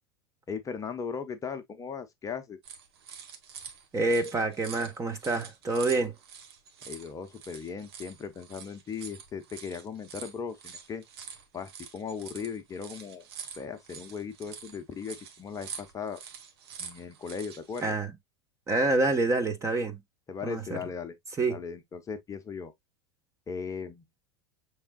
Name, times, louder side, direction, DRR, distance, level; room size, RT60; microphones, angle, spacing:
voice 1, 0.5-2.6 6.8-11.0 11.5-13.3 13.6-16.2 16.8-18.0 20.3-21.1 21.5-22.7 23.5-24.0, left 6 dB, 25° left, 0.8 m, -38 dB
sound 1, 2.6-17.8, right 7 dB, 70° right, 1.1 m, -46 dB
voice 2, 3.9-6.1 17.8-18.1 18.7-20.0 20.4-20.8 21.4-21.6, right 2 dB, 20° right, 1.1 m, -27 dB
6.3 x 3.5 x 2.2 m
hypercardioid pair, 95°, 14 cm